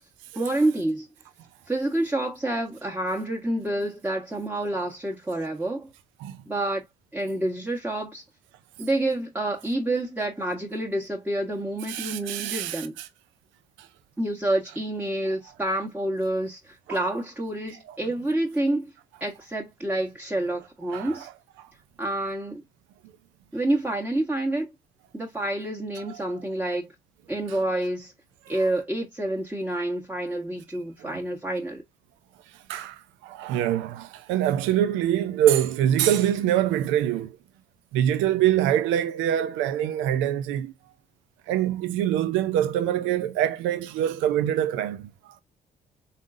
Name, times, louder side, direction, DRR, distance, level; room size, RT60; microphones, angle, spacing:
voice 1, 0.3-1.1 1.7-5.9 6.5-6.8 7.1-8.2 8.8-12.9 14.2-18.9 19.2-21.3 22.0-22.6 23.5-24.7 25.1-26.9 27.3-28.1 28.5-31.8, right 1 dB, 10° right, 1.3 m, -28 dB
voice 2, 11.9-12.9 13.8-13.9 16.9-17.0 17.9-18.0 20.9-21.3 21.6-21.7 26.1-26.4 28.5-28.7 30.7-31.1 32.7-37.4 37.9-40.7 41.5-45.3, right 11 dB, 75° right, 0.5 m, -25 dB
4.0 x 3.6 x 2.5 m
hypercardioid pair, 50°, 20 cm